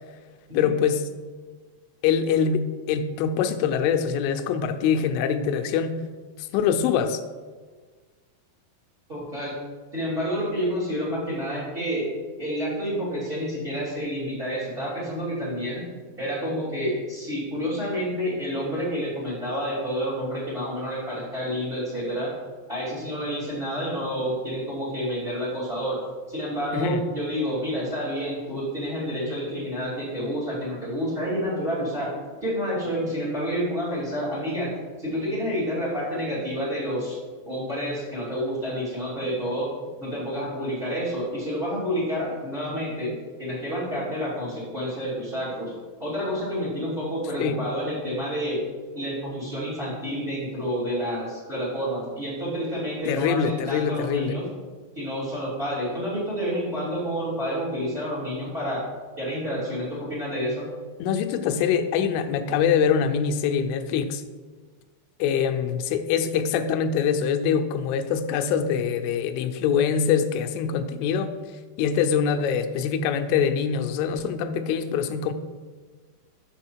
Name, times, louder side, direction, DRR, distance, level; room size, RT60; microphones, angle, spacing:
voice 1, 0.5-1.0 2.0-6.0 6.5-7.2 26.7-27.0 47.4-47.6 53.1-54.4 61.0-64.2 65.2-71.3 71.8-75.3, left 7 dB, 85° left, 7 dB, 2.9 m, -24 dB
voice 2, 9.1-9.5 9.9-12.1 12.4-15.8 16.2-22.3 22.7-26.0 26.3-34.7 35.0-37.1 37.4-39.7 40.0-45.7 46.0-48.6 48.9-54.5 54.9-58.8 59.2-60.7, equal, 85° right, -8 dB, 0.5 m, -29 dB
7.0 x 6.1 x 4.5 m, 1.4 s
omnidirectional pair, 5.8 m